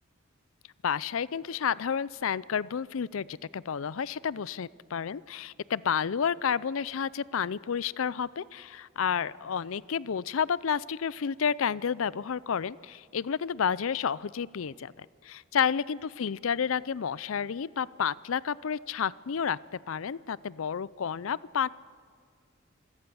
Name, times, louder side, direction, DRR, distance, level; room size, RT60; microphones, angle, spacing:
voice 1, 0.8-21.7, left 7 dB, 80° left, 21 dB, 0.5 m, -30 dB
26.0 x 17.0 x 7.0 m, 2.1 s
head